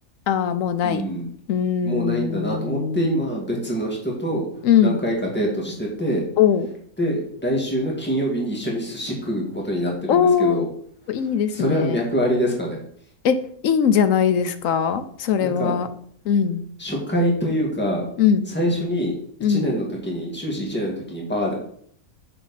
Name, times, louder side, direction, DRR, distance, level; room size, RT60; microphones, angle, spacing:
voice 1, 0.3-1.0 1.5-3.3 4.6-5.0 6.4-6.7 10.1-10.7 11.1-12.0 13.2-13.4 13.6-15.9 16.2-16.6 18.2-18.5 19.4-19.7, left 8 dB, 70° left, 11 dB, 1.0 m, -20 dB
voice 2, 0.8-1.2 1.8-4.5 4.8-6.2 7.0-10.7 11.5-12.8 15.4-15.7 16.8-18.0 18.5-19.1 19.5-21.5, equal, 5° left, -1 dB, 1.9 m, -25 dB
6.8 x 6.7 x 4.1 m, 0.63 s
omnidirectional pair, 1.6 m